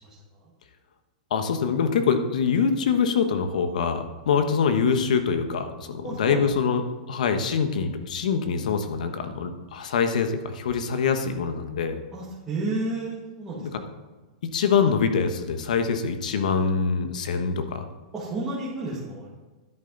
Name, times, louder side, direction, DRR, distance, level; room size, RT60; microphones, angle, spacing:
voice 1, 0.0-0.5 6.0-6.4 12.1-13.9 18.1-19.3, right 2 dB, 15° right, -8 dB, 1.9 m, -32 dB
voice 2, 1.3-6.8 7.1-12.0 13.6-13.7 14.4-17.9, left 6 dB, 80° left, 8 dB, 1.2 m, -24 dB
10.5 x 8.7 x 4.0 m, 1.2 s
supercardioid pair, 165°, 4 cm